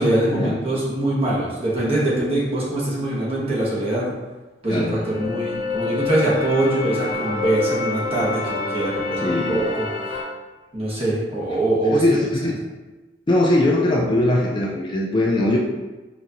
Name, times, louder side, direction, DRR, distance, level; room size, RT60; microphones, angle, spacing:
voice 1, 0.0-4.1 4.6-10.2 10.7-12.0, right 1 dB, 35° right, -6 dB, 1.1 m, -23 dB
sound 1, 4.7-10.2, left 3 dB, 45° left, 0.8 m, -27 dB
voice 2, 9.2-9.6 11.9-12.5 13.3-15.6, left 1 dB, 25° left, -2 dB, 0.3 m, -20 dB
4.4 x 2.6 x 2.8 m, 1.2 s
head